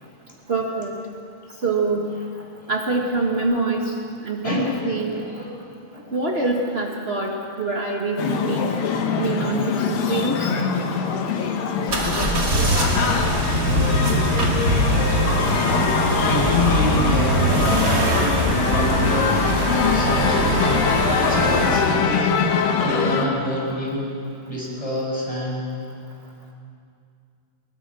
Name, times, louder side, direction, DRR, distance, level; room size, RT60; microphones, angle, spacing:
voice 1, 0.5-1.0 1.6-2.1 2.7-3.9 4.2-5.2 6.1-8.8 9.2-10.5, right 2 dB, 75° right, 0 dB, 0.5 m, -24 dB
voice 2, 4.4-5.5 5.9-6.5 10.7-10.8 11.2-11.4 16.2-22.4 22.8-24.1 24.5-25.7, left 1 dB, 10° left, -4 dB, 5.8 m, -28 dB
sound 1, 8.2-23.3, left 6 dB, 90° left, 3.1 m, -23 dB
sound 2, 11.9-22.0, right 1 dB, 30° right, 2.0 m, -22 dB
23.0 x 21.0 x 6.2 m, 2.4 s
omnidirectional pair, 3.8 m